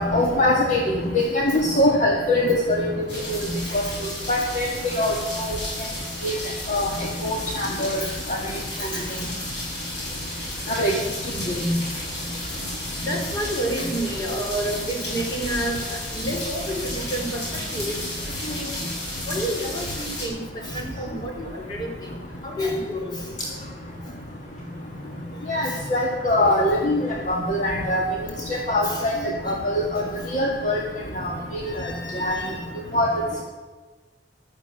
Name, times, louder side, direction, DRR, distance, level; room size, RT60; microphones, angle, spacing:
voice 1, 0.0-3.4 3.7-3.8 4.3-4.7 5.0-5.6 6.2-6.4 6.7-6.9 7.2-8.0 8.3-8.4 10.7-10.9 11.6-11.7 25.5-28.0 28.5-29.1 29.5-30.0 30.3-30.8 31.1-31.3 31.6-32.3 32.9-33.1, left 1 dB, 40° left, -1 dB, 1.9 m, -23 dB
sound 1, 3.1-20.3, left 1 dB, 70° left, 6.2 m, -33 dB
voice 2, 13.1-17.4 17.7-17.9 18.4-18.7 19.3-22.1 22.4-23.2 25.7-25.8 28.8-29.6 31.7-32.6, right 1 dB, 25° left, 0 dB, 3.8 m, -30 dB
15.5 x 12.0 x 7.0 m, 1.3 s
head